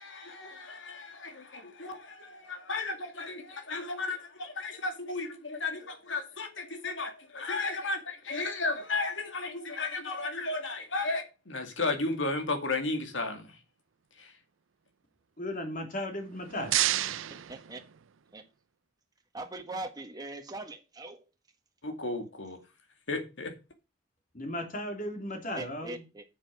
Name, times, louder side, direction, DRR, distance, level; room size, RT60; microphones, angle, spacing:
voice 1, 0.0-13.6 14.2-14.3 21.8-22.6 23.1-23.6, left 3 dB, 70° left, 2.3 m, -34 dB
voice 2, 15.4-16.8 24.3-26.0, left 1 dB, 45° left, 3.0 m, -36 dB
sound 1, 16.1-18.4, right 14 dB, 85° right, 0.5 m, -32 dB
voice 3, 17.5-17.8 18.3-18.4 19.3-21.2 25.5-26.2, right 2 dB, 20° right, 1.4 m, -41 dB
9.0 x 7.7 x 6.1 m
head